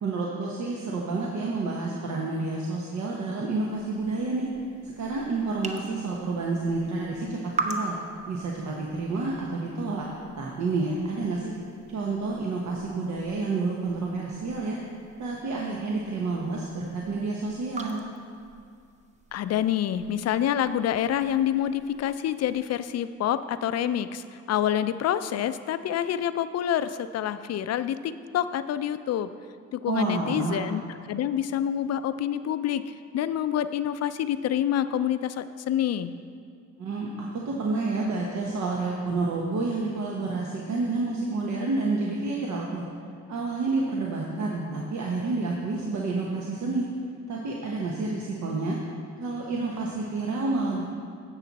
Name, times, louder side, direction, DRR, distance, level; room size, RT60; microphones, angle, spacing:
voice 1, 0.0-4.5 4.8-8.0 8.3-10.1 10.3-11.5 11.9-14.8 15.2-18.0 29.9-30.7 36.8-42.8 43.3-46.9 47.3-48.8 49.2-50.8, right 3 dB, 65° right, -2 dB, 1.1 m, -29 dB
sound 1, 3.7-22.7, right 3 dB, 25° right, 0.8 m, -42 dB
voice 2, 19.3-29.3 29.7-30.8 31.1-36.2, left 10 dB, 55° left, 12 dB, 0.5 m, -27 dB
11.0 x 7.4 x 4.1 m, 2.3 s
cardioid pair, 90°, 30 cm